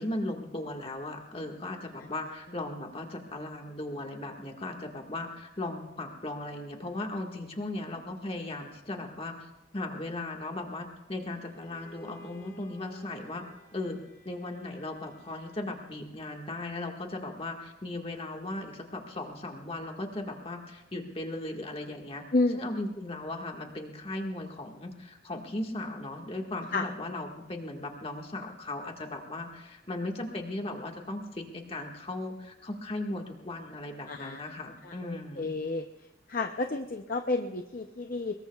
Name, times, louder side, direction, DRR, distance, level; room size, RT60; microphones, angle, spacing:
voice 1, 0.0-9.4 9.7-13.4 13.7-14.0 14.3-22.2 22.5-35.5, left 2 dB, 30° left, 2 dB, 1.7 m, -37 dB
Bowed string instrument, 11.4-16.2, right 1 dB, 15° left, 3.8 m, -56 dB
voice 2, 34.1-34.4 34.8-35.9 36.3-38.3, left 3 dB, 45° left, 5 dB, 0.7 m, -30 dB
23.5 x 21.0 x 2.4 m, 0.96 s
head